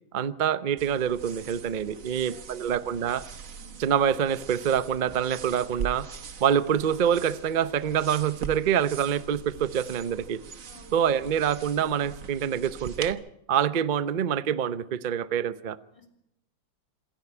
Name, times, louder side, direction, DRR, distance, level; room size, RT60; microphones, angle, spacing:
voice 1, 0.1-3.2 3.8-6.1 6.4-10.4 10.9-13.2 13.5-15.8, right 8 dB, 70° right, 0.4 m, -26 dB
sound 1, 0.8-13.1, right 6 dB, 50° right, 1.4 m, -42 dB
voice 2, 1.9-2.7 3.5-3.7 10.6-11.4 15.8-16.1, left 1 dB, 15° left, 3.5 m, -53 dB
27.0 x 10.5 x 9.9 m
omnidirectional pair, 2.1 m